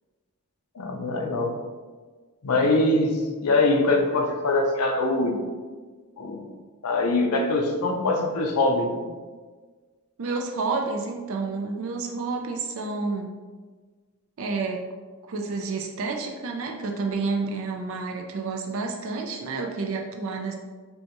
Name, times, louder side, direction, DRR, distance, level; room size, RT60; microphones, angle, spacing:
voice 1, 0.8-1.5 2.4-5.4 6.2-6.4 6.8-9.0, left 2 dB, 80° left, 3 dB, 0.6 m, -23 dB
voice 2, 10.2-13.4 14.4-14.8 15.3-20.5, right 4 dB, 60° right, 1 dB, 0.4 m, -29 dB
5.3 x 2.3 x 2.9 m, 1.4 s
head